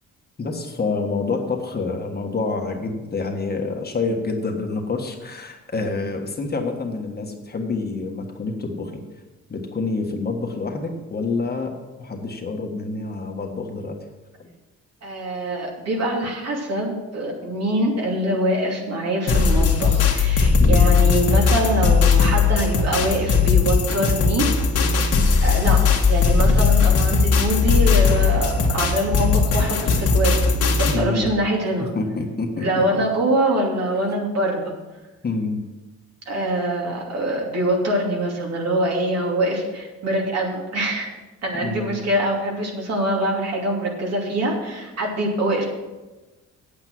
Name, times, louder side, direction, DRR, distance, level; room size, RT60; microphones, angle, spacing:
voice 1, 0.4-9.0 9.5-11.7 12.0-14.0 14.4-14.5 20.6-20.9 30.8-31.3 31.9-32.8 35.2-35.6 41.6-42.0, left 3 dB, 35° left, 2 dB, 1.5 m, -27 dB
voice 2, 15.0-24.5 25.0-25.1 25.4-30.5 30.8-31.9 32.6-34.7 36.3-41.1 41.4-45.7, right 1 dB, 60° right, 0 dB, 2.7 m, -24 dB
sound 1, 19.3-31.0, left 5 dB, 55° left, 1.7 m, -18 dB
8.6 x 8.4 x 6.1 m, 1.1 s
cardioid pair, 115°, 30 cm